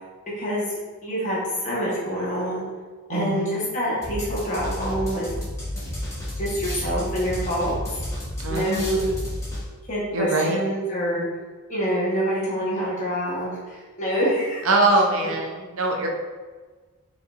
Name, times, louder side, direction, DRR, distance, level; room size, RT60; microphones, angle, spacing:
voice 1, 0.4-2.6 3.1-5.4 6.4-7.7 8.5-9.1 9.9-11.2 11.7-14.6, equal, 35° left, -6 dB, 1.2 m, -26 dB
voice 2, 3.1-3.6 8.4-9.1 10.1-10.6 14.6-16.1, right 2 dB, 70° right, 0 dB, 0.7 m, -23 dB
sound 1, 4.0-9.9, left 1 dB, 15° left, 1.2 m, -31 dB
5.1 x 3.3 x 2.5 m, 1.4 s
head